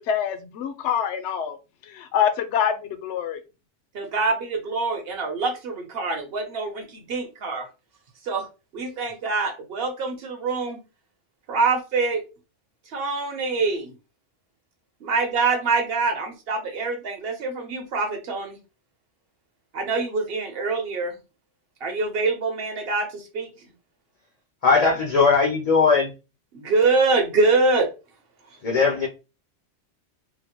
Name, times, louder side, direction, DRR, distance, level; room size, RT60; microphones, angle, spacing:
voice 1, 0.1-1.6 1.9-3.4, left 8 dB, 70° left, 9 dB, 0.9 m, -25 dB
voice 2, 3.9-7.7 8.2-8.5 8.7-10.8 11.5-12.2 12.9-13.9 15.0-18.6 19.7-21.2 21.8-23.5 26.5-27.9, right 3 dB, 55° right, 3 dB, 1.1 m, -25 dB
voice 3, 24.6-26.1 28.6-29.1, left 4 dB, 45° left, 0 dB, 0.5 m, -19 dB
3.7 x 2.1 x 2.9 m, 0.30 s
omnidirectional pair, 1.3 m